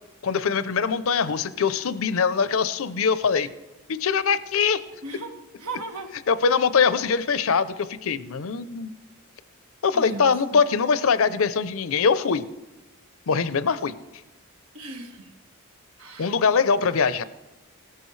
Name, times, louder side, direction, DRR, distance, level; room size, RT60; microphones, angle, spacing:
voice 1, 0.2-3.5 3.9-4.8 6.3-8.9 9.8-12.4 13.3-13.9 16.2-17.2, left 5 dB, 65° left, 14 dB, 0.6 m, -22 dB
voice 2, 5.0-5.3 5.6-6.1 9.9-10.6 14.7-15.3 16.0-16.3, right 3 dB, 85° right, 3 dB, 1.6 m, -37 dB
17.5 x 13.5 x 3.2 m, 1.0 s
head